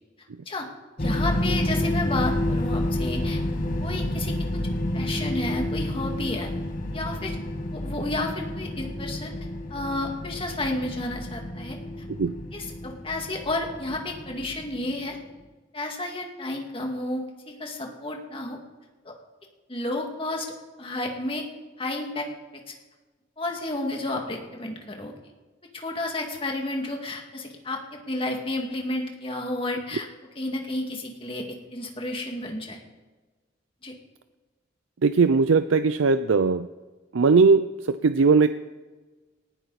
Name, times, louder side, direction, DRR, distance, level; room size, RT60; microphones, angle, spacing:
sound 1, 1.0-15.0, left 1 dB, 45° left, 1.3 m, -29 dB
voice 1, 1.0-3.4 3.8-4.3 4.9-6.5 6.9-7.4 7.7-9.3 9.7-11.8 12.5-15.2 15.7-18.6 19.0-19.1 19.7-20.5 20.8-21.4 21.8-22.3 23.4-25.1 25.7-30.1 30.4-31.4 31.7-32.8 33.8-33.9, left 2 dB, 25° left, 2 dB, 2.1 m, -31 dB
voice 2, 35.0-36.7 37.1-38.5, right 4 dB, 85° right, 11 dB, 0.5 m, -19 dB
18.5 x 16.5 x 4.1 m, 1.3 s
head